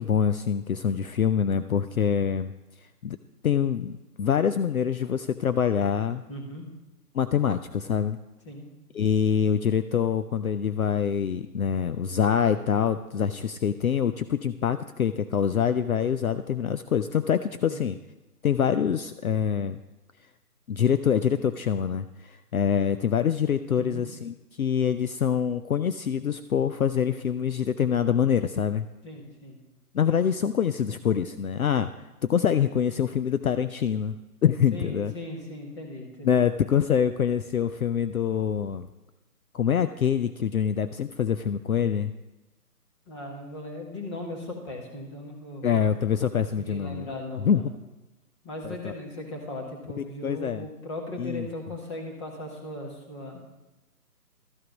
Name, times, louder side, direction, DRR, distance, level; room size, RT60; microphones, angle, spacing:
voice 1, 0.0-2.5 3.0-3.2 3.4-6.2 7.1-8.2 8.9-18.0 18.4-19.8 20.7-28.9 29.9-31.9 32.2-34.2 34.4-35.1 36.2-38.9 39.5-42.1 45.6-47.1 47.5-47.6 48.6-48.9 50.2-50.7 51.2-51.5, left 8 dB, 65° left, 11 dB, 0.5 m, -25 dB
voice 2, 6.3-6.6 8.4-8.6 17.7-17.8 23.8-24.0 29.0-29.6 34.7-36.4 43.1-45.7 46.3-47.7 48.4-53.4, left 1 dB, 20° left, 0 dB, 1.4 m, -38 dB
13.0 x 6.6 x 5.2 m, 1.1 s
figure-of-eight pair, 150°, 47 cm